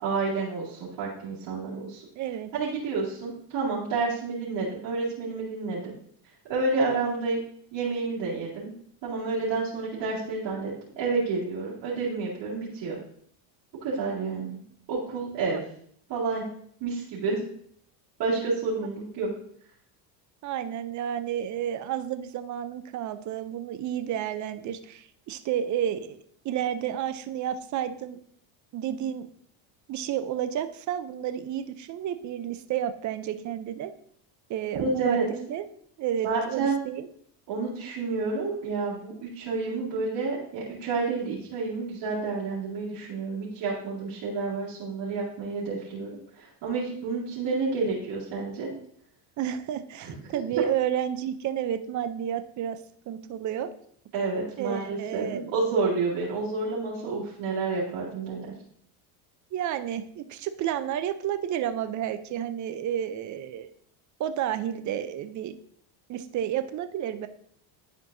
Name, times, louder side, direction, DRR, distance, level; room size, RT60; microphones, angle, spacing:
voice 1, 0.0-2.0 2.5-5.9 6.5-7.4 7.7-8.7 9.0-13.0 13.8-14.6 14.9-15.6 16.1-16.4 16.8-17.4 18.2-19.3 34.8-35.3 36.2-36.8 37.5-48.7 54.1-58.5, right 4 dB, 60° right, -9 dB, 2.5 m, -29 dB
voice 2, 2.2-2.5 15.5-15.6 20.4-28.2 28.7-29.3 29.9-33.9 34.5-35.7 36.0-37.1 49.4-52.8 53.1-53.7 54.6-55.5 59.5-63.7 64.2-65.5 66.1-67.3, right 10 dB, 35° right, 10 dB, 0.6 m, -31 dB
10.5 x 4.5 x 2.7 m, 0.63 s
cardioid pair, 120°, 50 cm